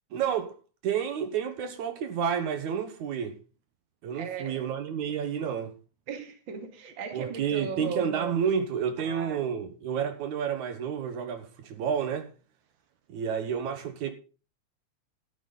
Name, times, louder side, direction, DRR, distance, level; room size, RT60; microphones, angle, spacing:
voice 1, 0.1-0.5 0.8-3.4 4.0-5.7 7.1-12.3 13.1-14.1, right 7 dB, 75° right, 2.7 m, -30 dB
voice 2, 4.1-4.7 6.1-8.1 9.0-9.4, right 5 dB, 45° right, 2.5 m, -37 dB
13.5 x 12.0 x 4.0 m
omnidirectional pair, 3.4 m